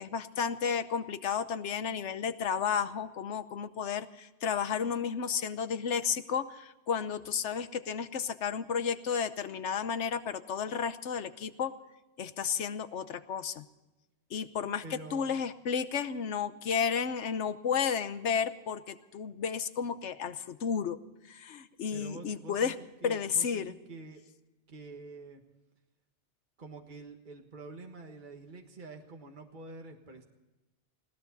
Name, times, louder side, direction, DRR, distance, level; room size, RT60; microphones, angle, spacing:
voice 1, 0.0-11.7 12.2-13.7 14.3-21.0 21.3-22.7 23.0-23.7, left 7 dB, 90° left, 12 dB, 1.2 m, -32 dB
voice 2, 14.8-15.3 21.9-22.7 23.0-24.2 24.7-25.4 26.6-30.2, right 3 dB, 45° right, 3 dB, 1.6 m, -47 dB
20.0 x 17.0 x 4.1 m, 1.0 s
omnidirectional pair, 1.2 m